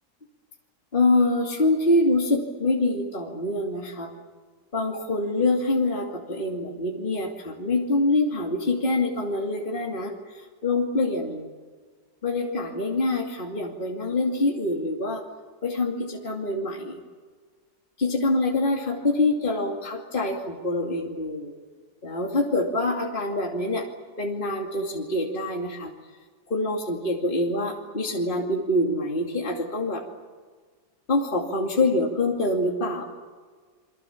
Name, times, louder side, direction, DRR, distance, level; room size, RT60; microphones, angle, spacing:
voice 1, 0.9-4.1 4.7-11.5 12.2-15.2 15.6-17.0 18.0-21.5 22.0-23.9 24.2-25.9 26.5-30.0 31.1-33.0, left 2 dB, 30° left, 0 dB, 2.7 m, -25 dB
28.5 x 24.5 x 7.3 m, 1.5 s
omnidirectional pair, 1.7 m